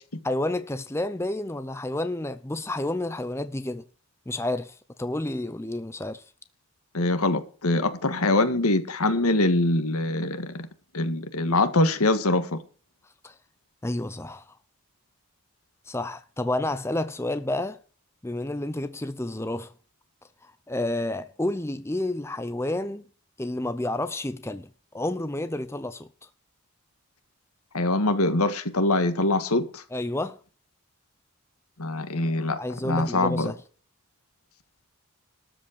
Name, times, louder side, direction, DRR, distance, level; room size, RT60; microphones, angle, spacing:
voice 1, 0.2-3.8 4.3-6.2 13.2-13.3 13.8-14.4 15.9-17.8 18.2-19.7 20.7-23.0 23.4-26.1 29.9-30.4 32.6-33.6, left 1 dB, 10° left, 0.6 m, -30 dB
voice 2, 6.9-10.7 10.9-12.6 27.7-29.8 31.8-32.6 32.8-33.5, left 2 dB, 85° left, 1.6 m, -23 dB
13.0 x 5.3 x 8.6 m
head